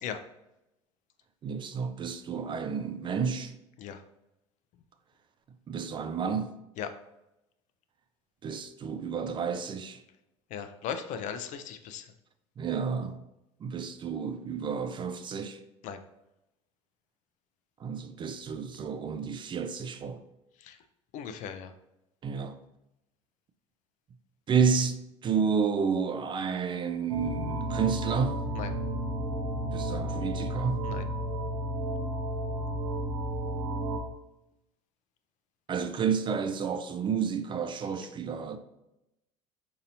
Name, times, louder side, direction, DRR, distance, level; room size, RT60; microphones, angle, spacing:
voice 1, 1.4-3.5 5.7-6.5 8.4-10.0 12.6-13.2 13.6-15.6 17.8-20.2 22.2-22.5 24.5-28.4 29.6-30.9 35.7-38.6, right 6 dB, 30° right, 0.4 m, -30 dB
voice 2, 10.5-12.1 15.8-16.0 20.6-20.8 21.1-21.7 28.5-28.7 30.8-31.1, left 7 dB, 55° left, 0.4 m, -37 dB
sound 1, 27.1-34.0, right 1 dB, 85° right, 0.5 m, -32 dB
4.0 x 2.8 x 2.7 m
hypercardioid pair, 75°, 15 cm